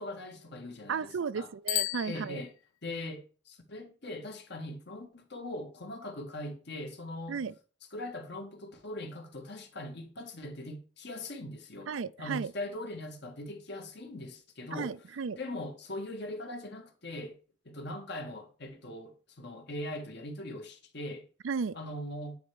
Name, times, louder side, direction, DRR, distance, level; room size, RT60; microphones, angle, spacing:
voice 1, 0.0-1.5 2.1-2.5 2.8-7.5 7.9-11.9 12.2-15.0 15.4-17.4 17.7-21.3 21.7-22.4, left 1 dB, 60° left, 1.8 m, -41 dB
voice 2, 0.9-2.4 7.3-7.5 11.9-12.5 14.7-15.4 21.4-21.8, right 5 dB, 80° right, 0.5 m, -34 dB
Bicycle bell, 1.6-3.0, left 18 dB, 90° left, 0.3 m, -35 dB
9.2 x 4.5 x 4.9 m
head